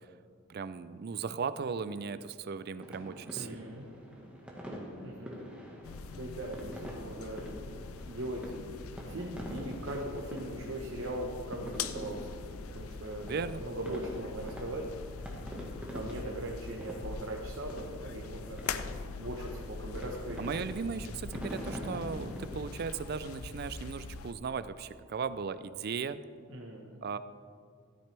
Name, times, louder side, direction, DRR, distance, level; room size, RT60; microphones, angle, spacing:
voice 1, 0.5-3.7 13.2-13.6 20.4-26.2 27.0-27.2, right 5 dB, 50° right, 13 dB, 0.4 m, -37 dB
sound 1, 2.8-22.7, equal, 5° right, 1.4 m, -45 dB
voice 2, 3.3-3.8 5.0-5.3 6.1-12.4 12.7-18.6 19.2-20.8 26.5-27.0, right 1 dB, 70° right, -1 dB, 1.0 m, -40 dB
sound 2, 5.8-24.3, left 4 dB, 90° left, 0.5 m, -43 dB
13.5 x 9.0 x 3.3 m, 2.2 s
head